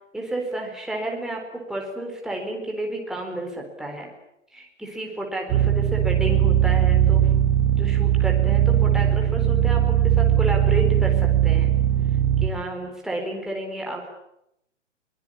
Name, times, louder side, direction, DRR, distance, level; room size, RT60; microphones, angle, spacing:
voice 1, 0.1-4.1 4.5-7.3 7.7-11.7 12.4-14.1, right 1 dB, ahead, 0 dB, 4.0 m, -31 dB
sound 1, 5.5-12.5, right 10 dB, 25° right, 2.3 m, -19 dB
23.0 x 21.0 x 9.9 m, 0.80 s
hypercardioid pair, 160°, 37 cm